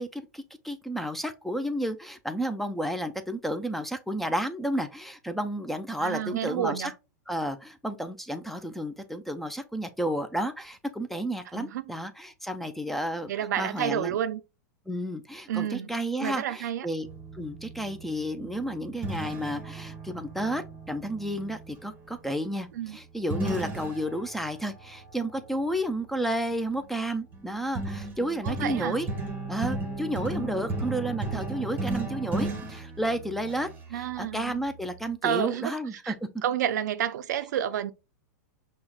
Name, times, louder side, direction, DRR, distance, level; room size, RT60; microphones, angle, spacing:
voice 1, 0.0-6.9 7.3-14.2 14.9-17.1 17.3-29.1 29.5-36.1, right 1 dB, ahead, 0.3 m, -32 dB
voice 2, 6.0-6.9 11.5-11.9 13.3-14.4 15.5-15.9 16.2-16.9 22.7-23.0 28.4-29.0 33.9-34.6 35.2-35.8 36.0-36.1 36.4-37.9, right 10 dB, 75° right, 0.4 m, -30 dB
sound 1, 17.0-21.8 23.3-25.5 26.5-26.8 27.3-33.8, right 2 dB, 20° right, 0.8 m, -35 dB
5.5 x 2.1 x 2.3 m
hypercardioid pair, 125°, 10 cm